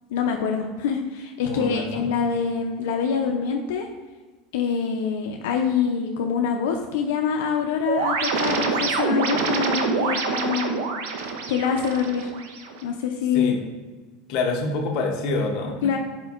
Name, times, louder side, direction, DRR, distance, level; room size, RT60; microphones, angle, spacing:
voice 1, 0.1-3.9 4.5-10.9 11.5-12.3 12.8-13.5 15.8-16.0, left 6 dB, 85° left, 2 dB, 0.4 m, -25 dB
voice 2, 1.4-2.2 13.3-13.6 14.3-15.8, left 3 dB, 45° left, 1 dB, 0.6 m, -26 dB
sound 1, 7.8-12.8, right 4 dB, 80° right, 0.5 m, -26 dB
4.3 x 4.3 x 2.3 m, 1.3 s
supercardioid pair, 170°, 0 cm